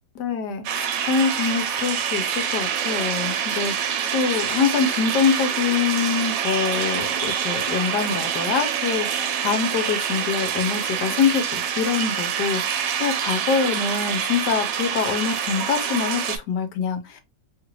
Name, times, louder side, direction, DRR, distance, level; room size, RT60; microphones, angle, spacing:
voice 1, 0.1-17.4, left 6 dB, 70° left, 1.2 m, -25 dB
sound 1, 0.7-16.4, right 8 dB, 80° right, 1.3 m, -26 dB
3.1 x 2.4 x 2.9 m
omnidirectional pair, 2.0 m